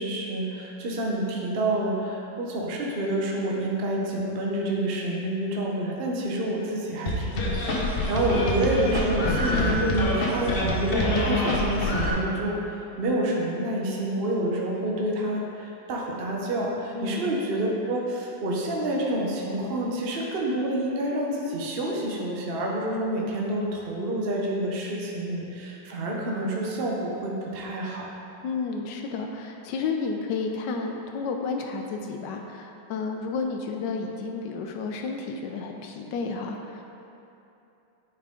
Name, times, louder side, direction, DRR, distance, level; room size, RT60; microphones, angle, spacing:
voice 1, 0.0-28.1, right 1 dB, 55° right, -2 dB, 0.6 m, -28 dB
sound 1, 7.1-12.1, left 1 dB, 50° left, 0.6 m, -25 dB
voice 2, 16.9-17.4 28.4-36.8, left 4 dB, 75° left, 3 dB, 1.1 m, -31 dB
8.9 x 4.6 x 3.7 m, 2.9 s
omnidirectional pair, 2.1 m